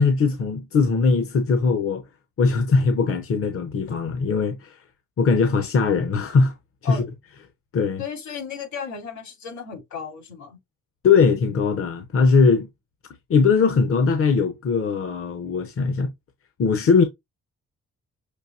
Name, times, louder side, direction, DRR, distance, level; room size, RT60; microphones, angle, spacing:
voice 1, 0.0-2.0 2.4-4.8 5.2-6.5 6.9-7.0 7.7-8.0 11.0-12.7 13.3-16.1 16.6-17.0, left 4 dB, 50° left, 0.9 m, -20 dB
voice 2, 8.0-10.6, left 7 dB, 65° left, 3.6 m, -34 dB
6.5 x 2.7 x 2.7 m
cardioid pair, 90°, 30 cm